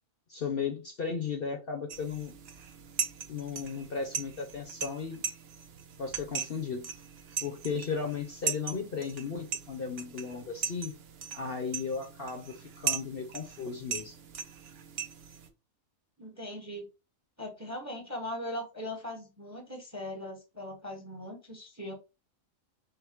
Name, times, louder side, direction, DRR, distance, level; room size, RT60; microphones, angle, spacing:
voice 1, 0.3-2.3 3.3-5.2 6.0-6.9 7.4-10.9 11.3-14.2, left 5 dB, 50° left, 0.8 m, -35 dB
sound 1, 1.9-15.5, right 7 dB, 55° right, 0.7 m, -39 dB
voice 2, 16.2-16.9 17.4-21.9, left 1 dB, 15° right, 0.8 m, -39 dB
5.6 x 2.1 x 3.6 m
omnidirectional pair, 1.5 m